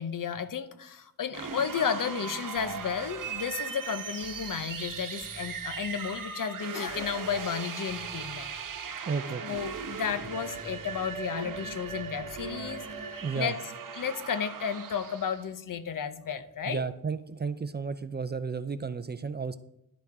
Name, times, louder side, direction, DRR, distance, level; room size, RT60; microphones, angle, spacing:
voice 1, 0.0-8.5 9.4-13.6 13.9-16.8, left 7 dB, 60° left, 12 dB, 0.8 m, -33 dB
sound 1, 1.3-15.5, right 6 dB, 60° right, 1.0 m, -38 dB
sound 2, 2.6-3.5 4.2-6.1 6.9-7.6 7.9-8.8 9.5-13.2, right 1 dB, ahead, 0.9 m, -53 dB
voice 2, 9.1-9.4 13.2-13.5 16.7-19.6, right 5 dB, 30° right, 12 dB, 0.4 m, -32 dB
11.5 x 6.9 x 4.8 m, 0.79 s
wide cardioid pair, 150°, 36 cm